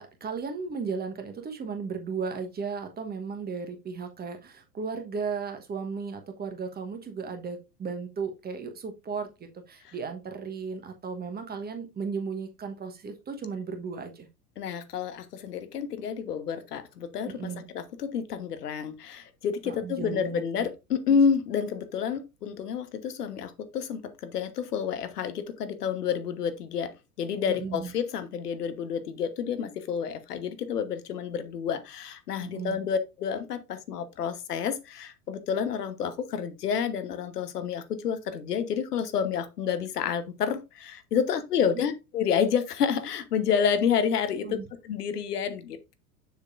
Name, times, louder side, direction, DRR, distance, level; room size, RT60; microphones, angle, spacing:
voice 1, 0.0-14.3 17.3-17.6 19.6-20.7 27.5-27.9 32.4-32.8 41.7-41.8 44.3-44.7, right 5 dB, 20° right, 1.2 m, -35 dB
voice 2, 14.6-26.9 27.2-44.6 44.8-45.9, left 7 dB, 70° left, 1.1 m, -29 dB
6.8 x 6.6 x 2.5 m
figure-of-eight pair, 85°, 48 cm